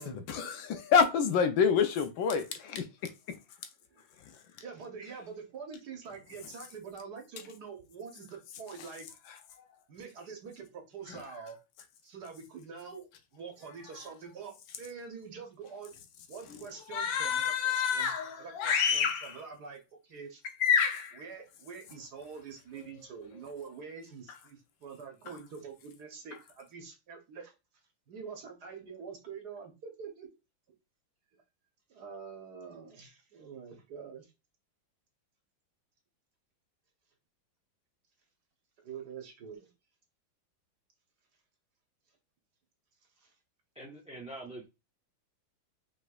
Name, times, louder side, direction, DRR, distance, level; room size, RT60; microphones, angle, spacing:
voice 1, 0.0-3.4 11.1-11.2 16.9-19.4 20.6-21.2 24.3-24.4, left 6 dB, 75° left, 1.4 m, -28 dB
voice 2, 4.6-9.1 9.9-11.6 12.0-13.1 13.3-16.0 16.3-18.1 18.4-20.4 21.1-27.5 28.1-30.3 31.9-34.3 38.8-39.7 43.2-43.3, right 5 dB, 60° right, 1.4 m, -45 dB
voice 3, 43.7-44.6, right 1 dB, 10° right, 0.3 m, -44 dB
5.3 x 3.6 x 2.3 m
omnidirectional pair, 2.2 m